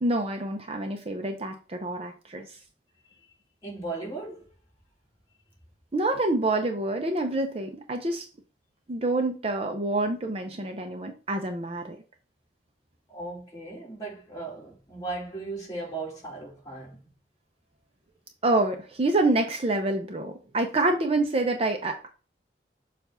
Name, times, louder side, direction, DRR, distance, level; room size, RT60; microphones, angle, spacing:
voice 1, 0.0-2.6 5.9-8.3 8.9-12.0 18.4-22.1, right 2 dB, 35° right, 0.7 m, -27 dB
voice 2, 3.6-4.5 13.1-17.0, right 3 dB, 20° left, 2.8 m, -37 dB
7.0 x 2.5 x 5.6 m
head